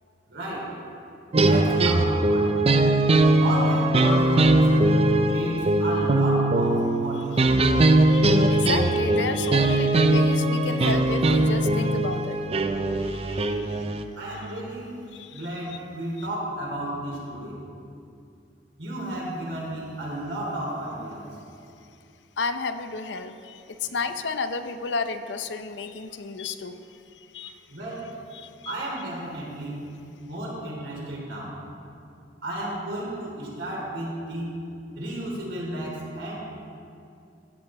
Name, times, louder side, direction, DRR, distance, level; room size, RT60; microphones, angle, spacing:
voice 1, 0.3-0.8 1.4-2.6 3.4-5.0 5.3-7.6 14.2-14.9 15.3-17.6 18.8-21.3 27.7-28.2 28.6-29.8 30.3-31.6 32.4-34.5 34.9-36.4, right 1 dB, 80° right, -3 dB, 3.2 m, -33 dB
sound 1, 1.3-14.0, right 2 dB, 35° right, 0.5 m, -21 dB
voice 2, 8.0-12.4 13.0-13.8 15.1-15.4 15.7-15.8 22.4-27.6 28.3-28.7, left 4 dB, 70° left, 9 dB, 0.6 m, -32 dB
15.5 x 8.1 x 4.3 m, 2.5 s
head